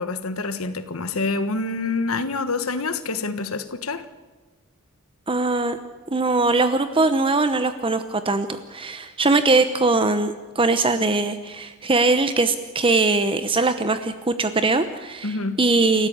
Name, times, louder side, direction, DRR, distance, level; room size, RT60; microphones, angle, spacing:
voice 1, 0.0-4.0 15.2-15.6, left 3 dB, 70° left, 10 dB, 1.4 m, -27 dB
voice 2, 5.3-5.8 6.1-16.1, right 3 dB, 25° right, 9 dB, 0.9 m, -21 dB
29.5 x 13.5 x 8.8 m, 1.2 s
head